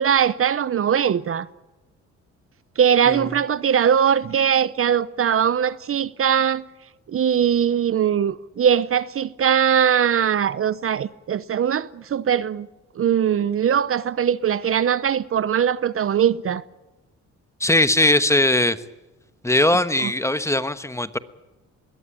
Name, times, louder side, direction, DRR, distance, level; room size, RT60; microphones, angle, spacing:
voice 1, 0.0-1.5 2.8-6.7 7.1-12.7 13.0-16.6 20.0-20.1, right 8 dB, 45° right, 0.8 m, -21 dB
voice 2, 17.6-18.8 19.4-21.2, left 1 dB, 10° left, 1.2 m, -20 dB
21.5 x 17.5 x 9.2 m
cardioid pair, 90°, 30 cm